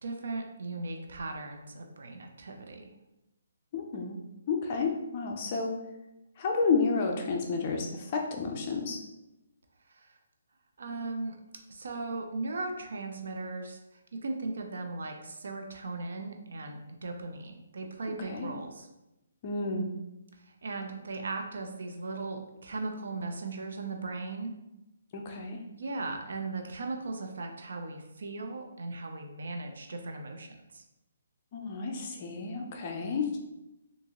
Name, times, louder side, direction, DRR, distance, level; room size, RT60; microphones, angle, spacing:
voice 1, 0.0-2.9 9.9-10.2 10.8-11.4 11.7-13.8 14.1-18.9 20.3-24.5 25.8-30.8, right 3 dB, 70° right, 4 dB, 0.5 m, -38 dB
voice 2, 3.7-4.2 4.5-5.7 6.4-9.0 18.3-18.5 19.4-19.9 25.1-25.6 31.5-33.3, left 4 dB, 35° left, 2 dB, 0.5 m, -31 dB
3.6 x 2.6 x 3.0 m, 0.95 s
hypercardioid pair, 160°, 0 cm